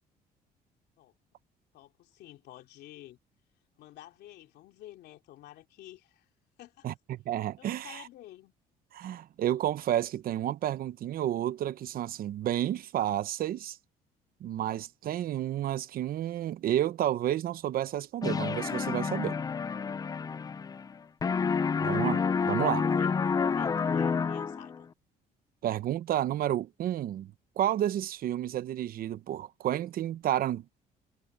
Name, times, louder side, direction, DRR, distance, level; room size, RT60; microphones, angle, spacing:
voice 1, 1.7-3.2 3.8-6.3 6.6-6.9 7.6-8.5 21.6-21.9 22.6-24.9, left 14 dB, 75° left, 2.9 m, -51 dB
voice 2, 6.8-8.0 8.9-13.8 14.4-19.4 21.8-22.8 25.6-30.7, right 12 dB, 60° right, 0.9 m, -31 dB
sound 1, 18.2-21.0 21.2-24.8, left 5 dB, 20° left, 0.4 m, -29 dB
cardioid pair, 110°, 17 cm